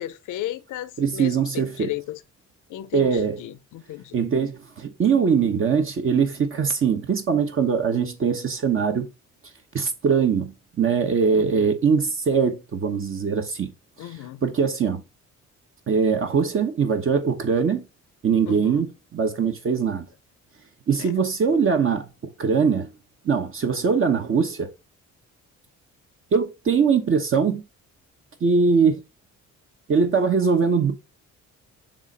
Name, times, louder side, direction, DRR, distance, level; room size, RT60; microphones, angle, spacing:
voice 1, 0.0-2.2 2.7-4.2 11.3-11.7 14.0-14.4 18.5-18.9 21.0-21.1, left 13 dB, 80° left, 0.7 m, -35 dB
voice 2, 1.0-1.9 2.9-3.4 4.1-9.1 9.7-10.5 10.8-13.7 14.0-14.1 14.4-15.0 15.9-17.8 18.2-20.1 20.9-22.1 22.4-22.9 23.2-24.7 26.3-27.6 28.4-29.0 29.9-30.9, right 6 dB, 45° right, 1.0 m, -22 dB
7.1 x 2.6 x 5.3 m
cardioid pair, 90°, 30 cm